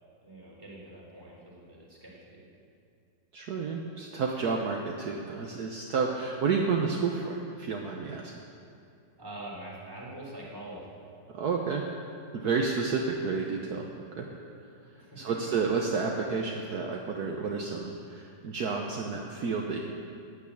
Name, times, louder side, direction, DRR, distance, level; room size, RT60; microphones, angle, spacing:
voice 1, 0.2-2.4 9.2-11.0 14.2-14.5 14.9-15.5, right 1 dB, 10° right, -5 dB, 3.9 m, -44 dB
voice 2, 3.3-8.3 11.3-11.8 12.3-13.9 14.2-14.3 15.2-19.8, right 5 dB, 60° right, 0 dB, 1.5 m, -30 dB
15.0 x 9.7 x 8.5 m, 2.5 s
omnidirectional pair, 2.0 m